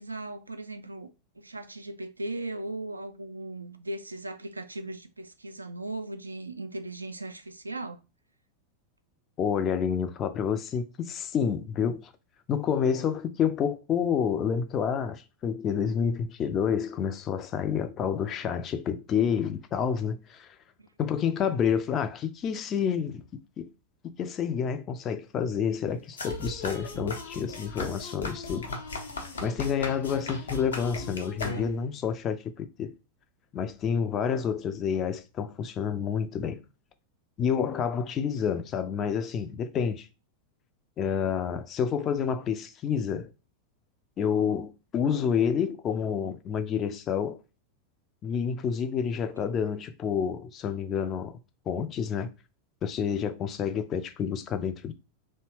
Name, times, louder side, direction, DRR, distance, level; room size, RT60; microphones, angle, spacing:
voice 1, 0.0-8.0, right 2 dB, 80° right, 0.3 m, -38 dB
voice 2, 9.4-12.1 12.5-20.5 21.0-23.2 23.6-23.7 24.2-28.7 29.4-32.9 33.5-36.6 37.4-40.1 41.0-43.3 44.2-47.4 48.2-51.4 51.7-52.3 52.8-54.9, left 7 dB, 30° left, 0.4 m, -29 dB
sound 1, 26.2-32.0, left 2 dB, 70° left, 0.7 m, -37 dB
2.7 x 2.1 x 3.1 m
figure-of-eight pair, 90°, 0 cm